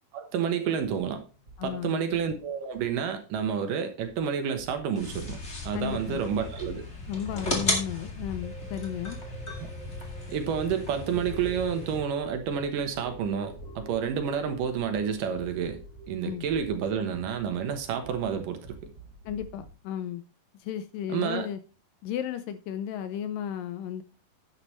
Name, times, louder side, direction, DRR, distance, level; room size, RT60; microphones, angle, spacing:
voice 1, 0.1-1.2 1.6-5.4 5.7-6.8 10.3-15.8 16.1-18.8 21.1-21.5, right 7 dB, 70° right, 7 dB, 2.5 m, -29 dB
sound 1, 0.6-19.7, right 2 dB, 40° right, 1.8 m, -50 dB
voice 2, 1.6-2.0 5.7-6.3 7.1-9.2 16.2-16.4 19.3-20.2 20.6-21.6 22.0-24.0, left 9 dB, 80° left, 12 dB, 2.2 m, -34 dB
sound 2, 4.9-12.0, left 2 dB, 25° left, 1.9 m, -35 dB
sound 3, 8.4-18.8 19.2-19.3, right 2 dB, 45° left, 2.7 m, -51 dB
10.5 x 9.7 x 3.1 m, 0.33 s
omnidirectional pair, 4.3 m